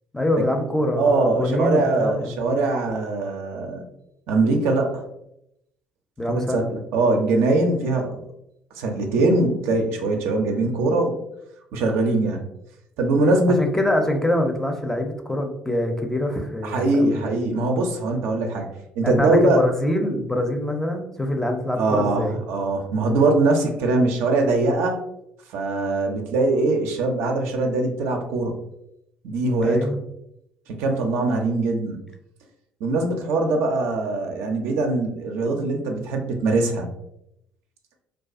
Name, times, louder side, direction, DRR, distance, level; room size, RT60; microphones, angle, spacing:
voice 1, 0.1-2.5 6.2-6.7 13.6-17.2 19.0-22.4 29.6-30.0, left 1 dB, 10° left, 4 dB, 0.5 m, -24 dB
voice 2, 0.9-3.8 4.3-5.0 6.3-6.6 6.9-8.3 8.8-11.2 11.7-12.4 13.0-13.7 16.6-18.7 19.0-19.6 21.8-25.0 25.5-28.6 29.2-29.9 30.8-32.0 32.8-36.9, right 2 dB, 70° right, 3 dB, 0.4 m, -22 dB
2.3 x 2.2 x 2.4 m, 0.80 s
hypercardioid pair, 55°, 4 cm